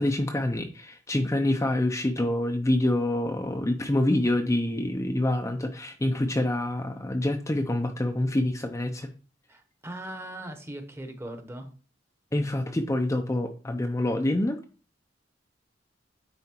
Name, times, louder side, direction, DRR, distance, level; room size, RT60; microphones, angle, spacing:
voice 1, 0.0-9.1 12.3-14.6, left 1 dB, 15° left, 4 dB, 0.5 m, -26 dB
voice 2, 9.5-11.7, right 1 dB, 15° right, 5 dB, 0.9 m, -39 dB
9.5 x 4.2 x 2.9 m, 0.39 s
head